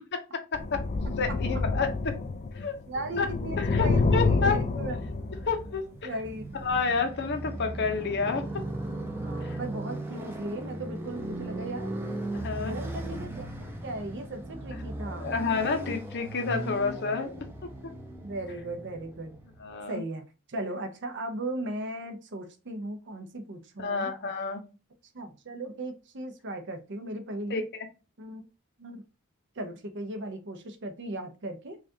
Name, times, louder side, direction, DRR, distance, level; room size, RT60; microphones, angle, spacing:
voice 1, 0.5-0.8 1.2-2.1 2.5-2.8 3.2-3.3 3.6-4.6 5.5-6.1 6.5-8.4 9.4-9.6 12.3-12.8 14.7-14.8 15.2-17.3 17.8-17.9 19.6-20.0 23.8-24.6 27.5-27.9, left 4 dB, 55° left, 7 dB, 0.7 m, -29 dB
sound 1, 0.5-2.7 3.0-5.7 6.6-6.8, left 3 dB, 30° left, 0.3 m, -28 dB
Motorcycle, 1.7-19.7, right 1 dB, 10° right, 0.6 m, -38 dB
voice 2, 2.9-5.1 6.0-6.4 6.7-6.9 9.2-12.0 12.6-13.5 13.8-15.3 17.2-17.5 18.2-19.4 19.9-24.1 25.1-27.6 28.2-28.4 28.8-29.0 29.6-31.8, right 1 dB, 55° right, 7 dB, 0.7 m, -37 dB
4.7 x 2.4 x 2.7 m, 0.31 s
head